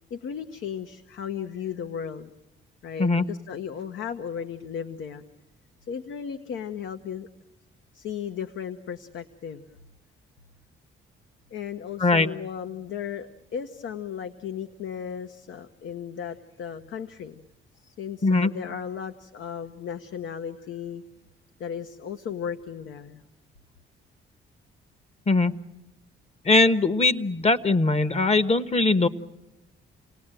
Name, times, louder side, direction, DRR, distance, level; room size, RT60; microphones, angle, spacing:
voice 1, 0.1-2.3 2.8-5.2 5.9-7.3 7.9-9.6 11.5-17.4 17.7-21.0 21.6-23.2, left 8 dB, 70° left, 9 dB, 1.0 m, -35 dB
voice 2, 26.4-29.1, left 3 dB, 30° left, 13 dB, 1.1 m, -21 dB
28.5 x 18.5 x 9.0 m, 0.96 s
cardioid pair, 90°, 20 cm